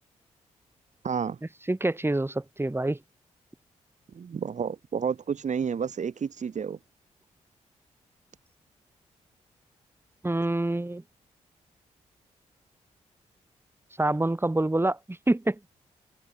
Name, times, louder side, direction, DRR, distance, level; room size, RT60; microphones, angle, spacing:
voice 1, 1.0-1.4 4.1-6.8, right 6 dB, 60° right, 3.0 m, -30 dB
voice 2, 1.7-3.0 10.2-11.0 14.0-15.6, right 2 dB, 15° right, 3.6 m, -26 dB
supercardioid pair, 50°, 14 cm